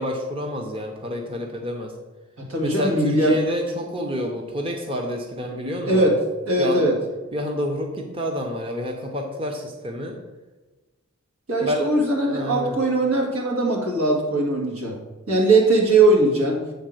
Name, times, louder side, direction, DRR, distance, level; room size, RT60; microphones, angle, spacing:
voice 1, 0.0-1.9 2.6-6.1 6.6-6.9 7.3-10.2 11.6-12.8, equal, 25° right, 2 dB, 0.7 m, -28 dB
voice 2, 2.5-3.3 5.9-6.2 6.5-6.9 11.5-14.9 15.3-16.6, right 2 dB, 80° right, 0 dB, 1.9 m, -20 dB
7.9 x 3.7 x 6.4 m, 1.2 s
head